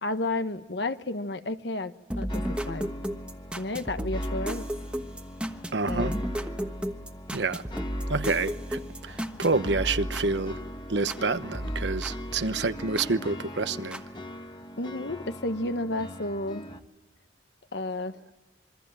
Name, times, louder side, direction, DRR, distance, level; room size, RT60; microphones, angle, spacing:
voice 1, 0.0-2.9 3.6-4.7 5.9-6.2 14.8-16.7 17.7-18.4, left 2 dB, 65° left, 1.3 m, -32 dB
sound 1, 2.1-11.2 11.5-13.1 13.9-14.0, equal, 5° right, 1.3 m, -34 dB
sound 2, 2.3-16.8, left 1 dB, 25° left, 1.5 m, -42 dB
voice 2, 5.7-6.2 7.3-7.6 8.1-10.6 10.9-14.0, right 3 dB, 70° right, 1.0 m, -28 dB
26.5 x 24.0 x 9.0 m
head